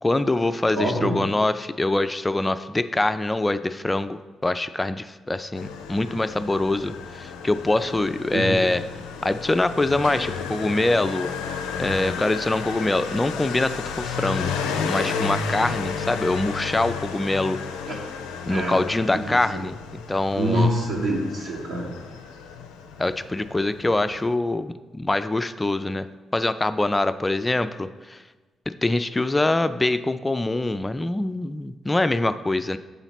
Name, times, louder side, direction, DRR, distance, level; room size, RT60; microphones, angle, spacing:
voice 1, 0.0-8.8 9.2-11.3 11.8-14.5 14.9-17.6 18.4-19.8 20.1-20.7 23.0-26.1 26.3-28.2 28.8-32.8, left 2 dB, 20° left, 11 dB, 0.4 m, -24 dB
voice 2, 0.7-1.2 8.3-8.6 17.8-18.0 18.5-18.8 19.1-19.4 20.3-21.9, right 1 dB, 65° right, -5 dB, 1.4 m, -25 dB
Motorcycle, 5.5-24.3, left 6 dB, 75° left, 0.5 m, -32 dB
6.8 x 4.0 x 5.8 m, 1.3 s
hypercardioid pair, 40°, 0 cm